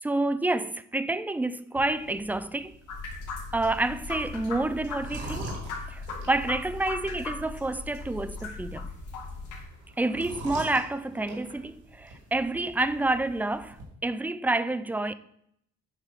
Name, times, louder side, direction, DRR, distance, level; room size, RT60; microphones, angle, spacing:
voice 1, 0.0-2.8 3.5-5.5 5.9-8.9 10.0-13.8 14.0-15.1, right 2 dB, 5° right, 0.3 m, -28 dB
sound 1, 1.8-13.8, right 1 dB, 85° right, 2.5 m, -45 dB
sound 2, 2.9-9.6, left 3 dB, 80° left, 2.1 m, -38 dB
8.2 x 3.6 x 5.7 m
cardioid pair, 90°, 30 cm